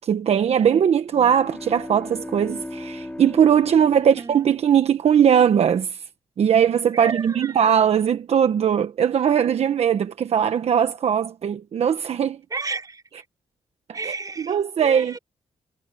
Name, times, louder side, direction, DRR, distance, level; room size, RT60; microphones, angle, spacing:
voice 1, 0.0-6.0 6.4-12.4 14.0-15.2, right 8 dB, 65° right, 1.2 m, -20 dB
sound 1, 1.0-5.1, left 1 dB, 10° left, 4.1 m, -37 dB
voice 2, 4.0-4.5 6.9-7.6 12.5-13.2 13.9-15.2, right 4 dB, 30° right, 3.9 m, -33 dB
cardioid pair, 90°, 12 cm